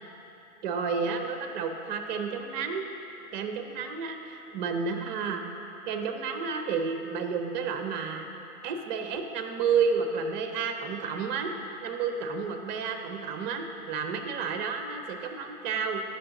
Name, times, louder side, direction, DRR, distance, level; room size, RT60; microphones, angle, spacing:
voice 1, 0.6-2.9 3.3-5.4 5.9-8.2 8.6-11.5 11.8-16.0, right 5 dB, 30° right, 5 dB, 0.7 m, -31 dB
13.0 x 5.8 x 3.0 m, 3.0 s
hypercardioid pair, 120°, 45 cm